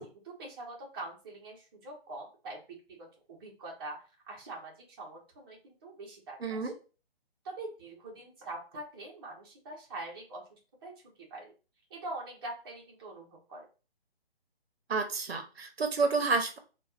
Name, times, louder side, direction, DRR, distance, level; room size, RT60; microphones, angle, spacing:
voice 1, 0.0-6.7 7.4-10.9 11.3-11.5 11.9-13.7, right 2 dB, 25° right, -2 dB, 0.8 m, -44 dB
voice 2, 6.4-6.7 14.9-16.6, right 4 dB, 75° right, 5 dB, 0.8 m, -30 dB
4.2 x 2.3 x 2.3 m, 0.34 s
figure-of-eight pair, 155°, 31 cm